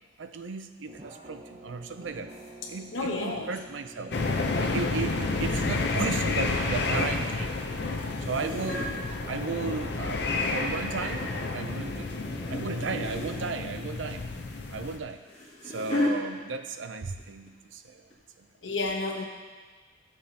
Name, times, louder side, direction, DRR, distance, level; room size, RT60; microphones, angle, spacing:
voice 1, 0.2-2.3 2.7-4.1 4.6-7.6 7.9-8.8 9.3-12.1 12.5-14.2 14.7-15.2 15.6-18.0 18.4-18.5, right 4 dB, 85° right, 9 dB, 0.6 m, -35 dB
sound 1, 0.9-13.5, right 2 dB, 30° right, 0.6 m, -48 dB
sound 2, 2.3-2.5 5.4-5.9 6.2-7.4 8.0-8.9 9.9-10.7 11.2-11.5 12.5-12.6 12.9-13.4 14.9-16.1 17.0-17.2 17.5-17.6 18.1-18.2, left 1 dB, 35° left, 2.1 m, -34 dB
voice 2, 2.9-3.5 4.5-4.9 18.6-19.2, left 3 dB, 80° left, 1 dB, 1.2 m, -32 dB
sound 3, 4.1-15.0, left 3 dB, 60° left, 0.7 m, -30 dB
13.0 x 6.5 x 2.9 m, 1.4 s
head